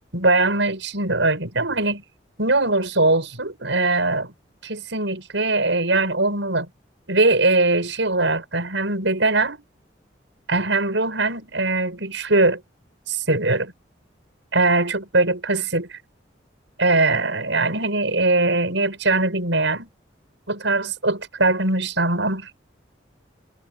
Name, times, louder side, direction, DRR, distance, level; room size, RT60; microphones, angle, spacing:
voice 1, 0.1-2.0 2.4-4.3 4.6-6.7 7.1-9.6 10.5-12.6 13.1-13.7 14.5-16.0 16.8-19.9 20.5-22.5, right 2 dB, 85° right, 6.3 m, -21 dB
head